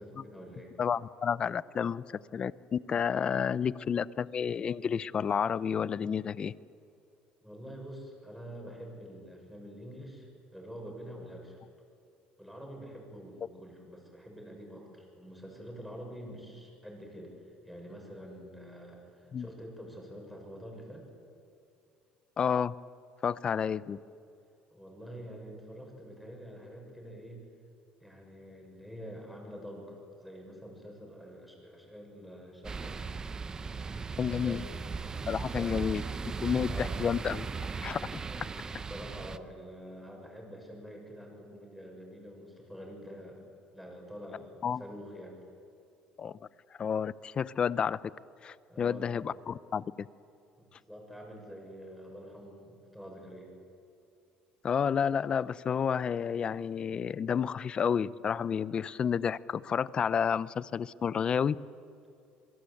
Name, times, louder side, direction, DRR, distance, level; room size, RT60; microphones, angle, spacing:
voice 1, 0.0-0.7 7.4-11.6 12.4-17.3 17.6-21.0 24.7-27.4 28.0-33.0 34.3-34.8 35.1-35.9 36.7-36.9 38.2-45.4 48.7-49.1 50.6-53.5, equal, ahead, 0 dB, 6.8 m, -46 dB
voice 2, 0.8-2.0 2.3-6.5 19.3-19.5 22.4-22.7 23.2-24.0 34.2-34.6 35.3-36.0 36.4-37.5 37.8-38.0 44.6-44.8 46.2-46.4 46.8-48.0 48.4-50.1 54.6-61.6, left 7 dB, 30° left, 18 dB, 0.6 m, -30 dB
sound 1, 32.6-39.4, right 4 dB, 20° right, 0.9 m, -37 dB
26.5 x 23.5 x 8.6 m, 2.5 s
cardioid pair, 140°, 3 cm